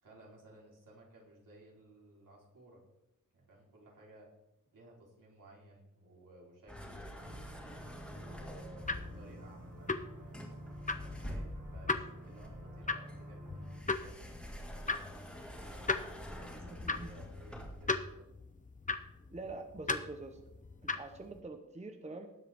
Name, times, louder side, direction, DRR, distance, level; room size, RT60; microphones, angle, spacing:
voice 1, 0.0-2.8 3.3-4.3 4.7-7.2 8.2-10.5 11.0-14.3 14.8-15.0 15.4-16.0 16.4-18.3, right 1 dB, 75° right, -3 dB, 3.9 m, -57 dB
sound 1, 6.7-9.2 10.3-11.9 12.4-18.0, equal, 5° left, 2.2 m, -47 dB
sound 2, 7.2-13.8, right 1 dB, 50° right, 3.8 m, -50 dB
sound 3, 8.8-21.4, left 3 dB, 25° left, 0.7 m, -39 dB
voice 2, 16.5-17.1 19.3-20.4 20.8-22.3, right 2 dB, 20° right, 6 dB, 0.9 m, -45 dB
19.0 x 7.7 x 3.6 m, 0.88 s
wide cardioid pair, 140°, 32 cm